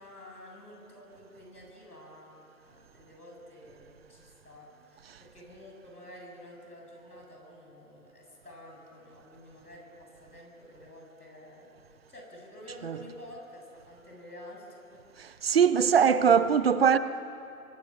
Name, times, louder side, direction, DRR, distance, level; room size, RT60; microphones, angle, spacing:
voice 1, 0.0-2.4 2.7-11.7 12.1-16.4, left 1 dB, 90° left, 7.9 m, -50 dB
voice 2, 15.2-17.0, right 7 dB, 40° right, 0.8 m, -22 dB
24.0 x 22.0 x 7.1 m
figure-of-eight pair, 135°, 45 cm